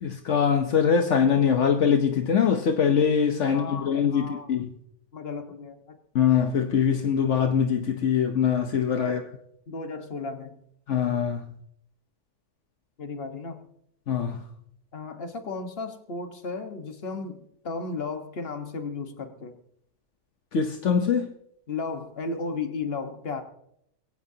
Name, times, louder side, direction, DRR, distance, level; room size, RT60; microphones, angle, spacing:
voice 1, 0.0-4.7 6.1-9.2 10.9-11.5 14.1-14.4 20.5-21.3, left 7 dB, 70° left, 1.3 m, -23 dB
voice 2, 3.4-4.5 5.1-6.0 9.0-9.2 9.7-10.6 13.0-13.6 14.9-19.5 21.7-23.4, left 4 dB, 50° left, 1.6 m, -34 dB
22.0 x 17.0 x 2.8 m
omnidirectional pair, 1.3 m